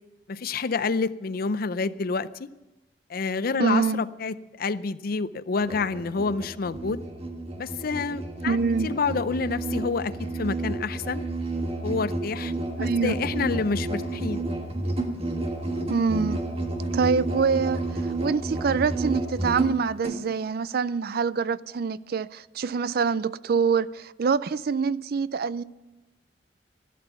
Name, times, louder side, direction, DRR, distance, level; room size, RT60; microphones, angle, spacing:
voice 1, 0.3-2.5 3.1-7.0 7.6-8.6 8.8-11.2 11.8-12.5 12.8-14.4, left 4 dB, 55° left, 0.5 m, -28 dB
voice 2, 3.6-4.0 8.5-8.9 12.8-13.1 15.9-16.4 16.9-25.6, right 5 dB, 55° right, 0.4 m, -25 dB
Musical instrument, 5.6-20.2, right 2 dB, 35° right, 1.7 m, -31 dB
14.0 x 12.0 x 7.0 m
head